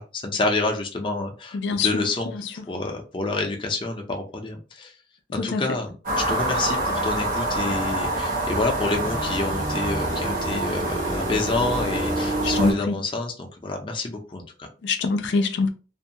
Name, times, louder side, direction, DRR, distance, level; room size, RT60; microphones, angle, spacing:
voice 1, 0.0-2.3 2.7-4.9 5.3-14.7, left 2 dB, 30° left, 0.5 m, -28 dB
voice 2, 1.5-1.9 5.4-5.6 12.6-13.0 14.8-15.7, left 4 dB, 85° left, 0.4 m, -23 dB
sound 1, 6.1-12.7, right 1 dB, 50° right, 1.0 m, -26 dB
2.5 x 2.2 x 2.8 m
head